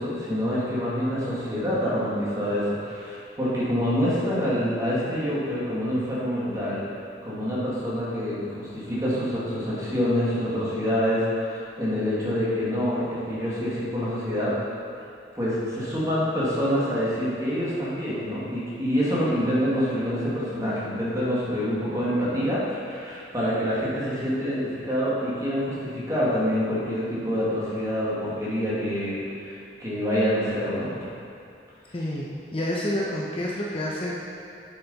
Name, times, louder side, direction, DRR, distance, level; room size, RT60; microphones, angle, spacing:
voice 1, 0.0-6.8 7.2-14.5 15.4-31.1, equal, 20° right, -8 dB, 1.9 m, -26 dB
voice 2, 31.9-34.1, left 1 dB, 30° left, -4 dB, 0.7 m, -29 dB
7.2 x 7.0 x 4.1 m, 2.5 s
head